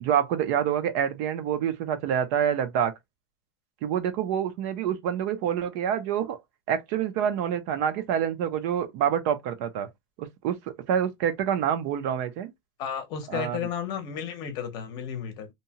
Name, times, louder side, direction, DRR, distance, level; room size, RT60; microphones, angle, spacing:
voice 1, 0.0-2.9 3.8-6.4 6.7-9.9 10.2-10.6 10.9-12.5 13.3-13.6, right 9 dB, 45° right, 0.5 m, -27 dB
voice 2, 12.8-15.5, left 8 dB, 35° left, 0.8 m, -33 dB
2.8 x 2.2 x 2.7 m
supercardioid pair, 165°, 12 cm